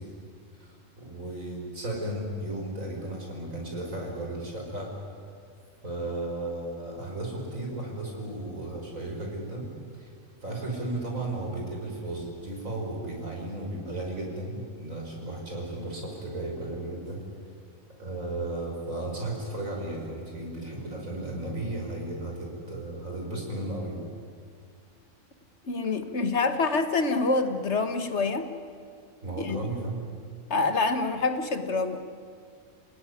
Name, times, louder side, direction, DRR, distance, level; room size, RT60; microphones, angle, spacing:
voice 1, 0.5-4.9 5.8-9.7 9.9-10.1 10.4-17.2 18.0-24.0 29.2-30.0, right 2 dB, 85° right, 0 dB, 5.8 m, -34 dB
voice 2, 25.6-28.5 29.4-29.7 30.5-32.0, left 3 dB, 60° left, 8 dB, 1.8 m, -26 dB
28.5 x 17.5 x 10.0 m, 2.2 s
omnidirectional pair, 1.4 m